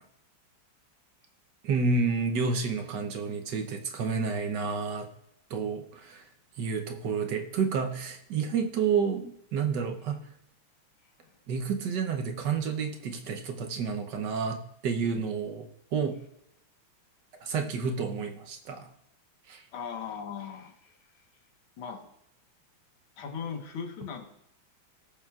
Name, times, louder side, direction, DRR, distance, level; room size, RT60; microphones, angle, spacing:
voice 1, 1.6-5.1 5.5-6.2 6.6-10.2 11.5-16.2 17.4-18.9 19.5-19.6, right 5 dB, 65° right, 5 dB, 1.3 m, -30 dB
voice 2, 19.7-21.0 21.8-22.1 23.2-24.3, left 6 dB, 80° left, 4 dB, 2.1 m, -38 dB
19.5 x 6.9 x 2.4 m, 0.75 s
omnidirectional pair, 2.2 m